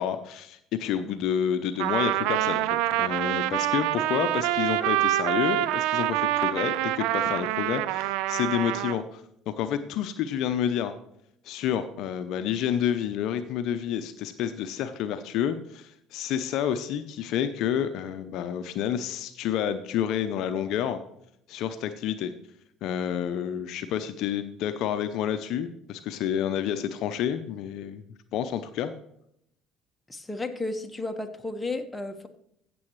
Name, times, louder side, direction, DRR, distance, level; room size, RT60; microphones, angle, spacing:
voice 1, 0.0-11.0 11.4-21.0 21.5-22.3 22.8-28.0 28.3-28.9, left 9 dB, 65° left, 10 dB, 0.7 m, -29 dB
Trumpet, 1.8-9.0, right 15 dB, 75° right, 0.4 m, -26 dB
voice 2, 30.1-32.3, left 2 dB, 15° left, 5 dB, 1.4 m, -33 dB
15.5 x 6.9 x 3.2 m, 0.72 s
hypercardioid pair, 65°, 0 cm